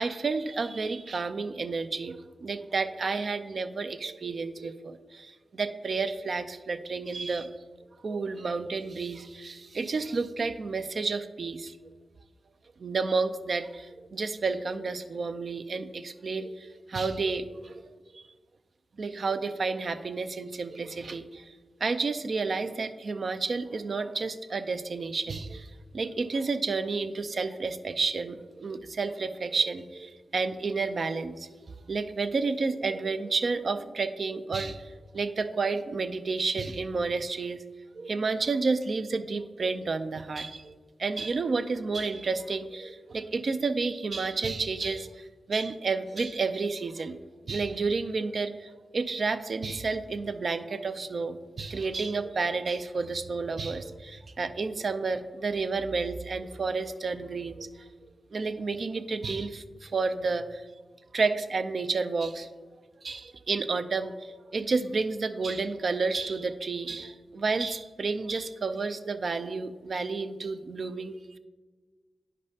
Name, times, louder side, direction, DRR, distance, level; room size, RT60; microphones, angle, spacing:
voice 1, 0.0-7.5 8.0-11.8 12.8-18.2 19.0-21.5 21.8-31.5 31.9-37.6 37.9-47.2 47.5-57.7 58.3-60.6 61.1-62.5 63.0-71.4, right 4 dB, 65° right, 10 dB, 0.4 m, -31 dB
9.6 x 5.2 x 2.7 m, 1.4 s
cardioid pair, 40°, 0 cm